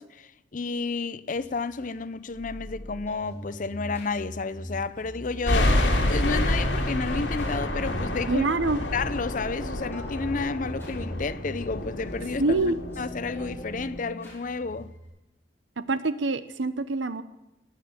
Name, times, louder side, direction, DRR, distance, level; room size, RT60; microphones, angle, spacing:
voice 1, 0.0-8.4 8.9-12.6 13.0-14.9, left 4 dB, 45° left, 0.6 m, -31 dB
sound 1, 1.4-15.1, equal, 15° left, 6.0 m, -42 dB
sound 2, 5.5-14.0, left 1 dB, 75° left, 2.4 m, -28 dB
voice 2, 8.3-8.8 12.4-12.8 15.8-17.2, right 3 dB, 80° right, 0.9 m, -25 dB
18.0 x 6.3 x 8.7 m
head